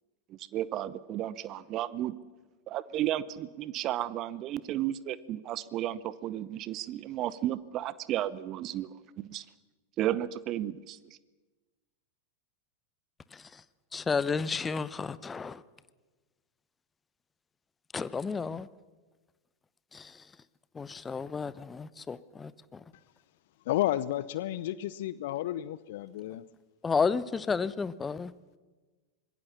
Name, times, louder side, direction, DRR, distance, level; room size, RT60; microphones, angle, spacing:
voice 1, 0.3-2.1 2.7-8.9 9.3-9.4 10.0-11.0, right 13 dB, 35° right, 0.8 m, -33 dB
voice 2, 13.3-13.6 13.9-15.6 17.9-18.7 19.9-20.3 20.7-22.8 26.8-28.3, left 5 dB, 15° left, 0.8 m, -32 dB
voice 3, 23.7-26.4, left 14 dB, 55° left, 0.7 m, -31 dB
25.5 x 21.5 x 7.1 m
figure-of-eight pair, 90°, 0 cm